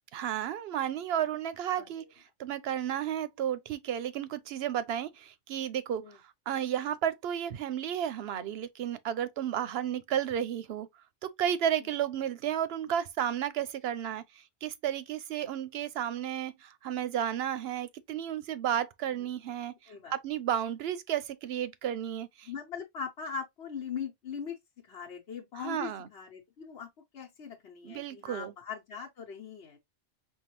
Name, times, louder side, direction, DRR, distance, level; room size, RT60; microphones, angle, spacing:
voice 1, 0.1-10.9 11.2-22.5 25.6-26.1 27.8-28.5, right 10 dB, 65° right, 0.8 m, -33 dB
voice 2, 1.8-2.1 6.0-6.2 19.1-19.3 19.9-20.1 22.4-24.6 24.9-26.9 27.1-29.8, left 6 dB, 65° left, 1.1 m, -40 dB
5.4 x 2.3 x 3.0 m
omnidirectional pair, 1.2 m